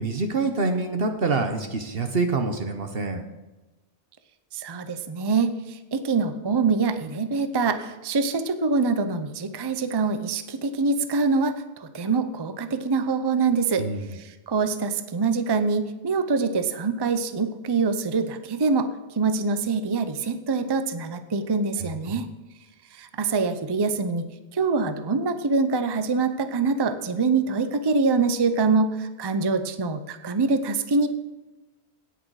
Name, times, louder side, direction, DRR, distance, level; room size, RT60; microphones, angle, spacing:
voice 1, 0.0-3.2 13.8-14.1 22.1-22.2, right 3 dB, 60° right, 6 dB, 1.1 m, -26 dB
voice 2, 4.5-18.9 19.2-22.3 22.9-24.3 24.5-31.1, right 4 dB, 30° right, 10 dB, 0.6 m, -25 dB
17.0 x 6.5 x 4.8 m, 1.1 s
omnidirectional pair, 1.2 m